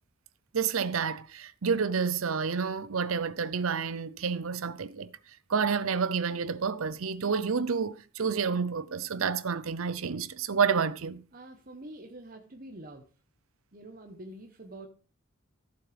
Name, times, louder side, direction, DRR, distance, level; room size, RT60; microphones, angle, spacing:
voice 1, 0.5-5.1 5.5-11.2, right 6 dB, 80° right, 0.7 m, -29 dB
voice 2, 11.3-13.0 13.7-14.9, right 1 dB, 40° right, 1.0 m, -46 dB
14.5 x 7.5 x 3.4 m
head